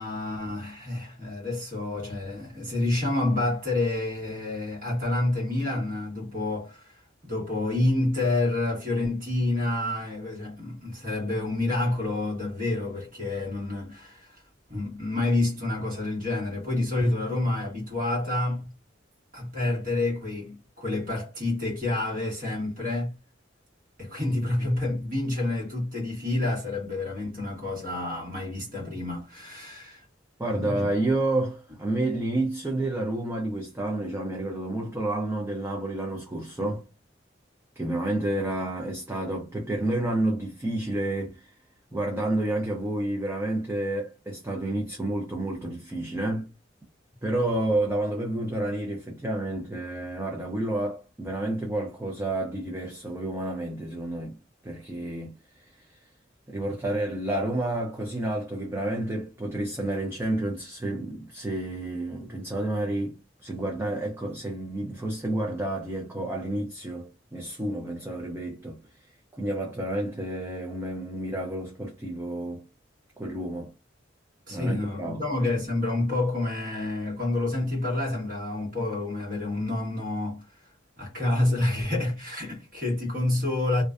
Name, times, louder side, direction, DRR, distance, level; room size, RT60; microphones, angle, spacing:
voice 1, 0.0-14.4 14.7-18.7 19.3-23.2 24.0-30.1 30.5-30.9 74.5-83.8, left 2 dB, 45° right, 1.3 m, -28 dB
voice 2, 30.4-36.8 37.8-41.5 41.9-46.5 47.2-54.4 54.6-56.1 56.5-69.1 69.4-72.6 73.2-73.7 74.5-75.2, right 1 dB, 15° right, 0.4 m, -30 dB
2.5 x 2.1 x 2.4 m
head